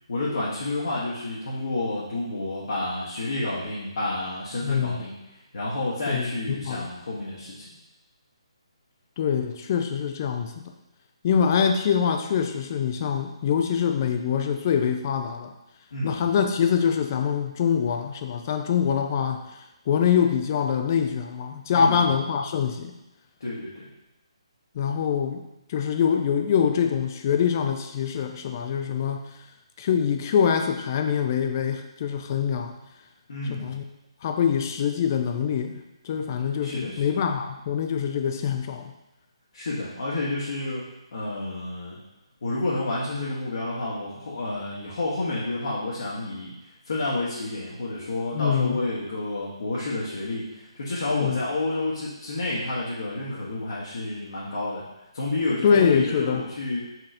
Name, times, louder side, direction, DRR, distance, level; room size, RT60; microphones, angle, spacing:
voice 1, 0.1-5.1 5.5-7.7 15.9-16.2 21.7-22.0 23.4-23.9 33.3-33.7 36.6-37.0 39.5-42.0 42.4-46.5 46.8-54.8 55.1-56.8, left 2 dB, 60° left, -7 dB, 1.0 m, -30 dB
voice 2, 4.6-5.0 6.1-6.9 9.2-10.6 11.2-15.5 16.0-19.4 19.9-22.9 24.7-25.4 25.7-29.3 29.8-32.7 33.5-33.8 34.2-38.9 48.3-48.8 51.1-51.4 55.6-56.4, left 7 dB, 35° left, 6 dB, 0.4 m, -24 dB
4.4 x 4.0 x 2.6 m, 0.96 s
figure-of-eight pair, 140°, 3 cm